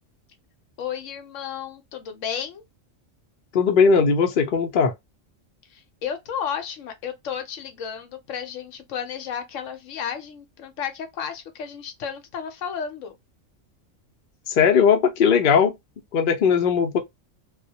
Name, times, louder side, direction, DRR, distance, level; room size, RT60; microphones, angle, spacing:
voice 1, 0.8-2.6 5.7-13.2, left 7 dB, 75° left, 0.9 m, -33 dB
voice 2, 3.5-4.9 14.5-15.7 16.1-17.0, left 6 dB, 55° left, 0.6 m, -18 dB
2.3 x 2.1 x 2.6 m
omnidirectional pair, 1.4 m